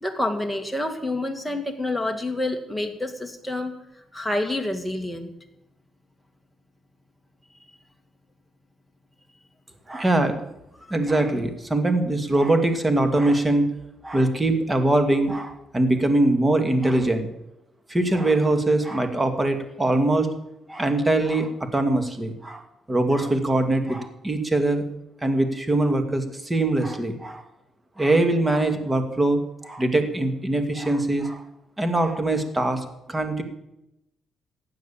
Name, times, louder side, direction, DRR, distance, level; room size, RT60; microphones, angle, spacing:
voice 1, 0.0-3.7 4.1-5.3 10.8-10.9, left 1 dB, 5° left, 4 dB, 2.3 m, -28 dB
voice 2, 9.9-10.4 10.9-13.7 14.0-17.3 17.9-20.3 20.7-24.8 25.2-27.4 28.0-31.4 31.8-33.4, right 2 dB, 20° right, 7 dB, 2.1 m, -22 dB
15.5 x 9.4 x 7.2 m, 0.86 s
cardioid pair, 90°, 0 cm